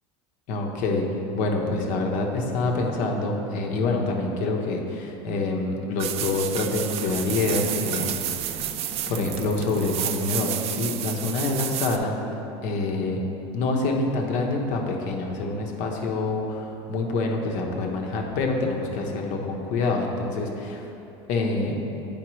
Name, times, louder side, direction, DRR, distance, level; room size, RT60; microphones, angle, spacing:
voice 1, 0.5-1.0 1.3-8.6 9.1-12.2 12.6-13.2 13.5-20.9 21.3-21.8, left 3 dB, 55° left, 1 dB, 1.0 m, -26 dB
sound 1, 6.0-12.0, right 10 dB, 45° right, 0.4 m, -30 dB
8.7 x 5.1 x 3.1 m, 2.9 s
supercardioid pair, 115°, 15 cm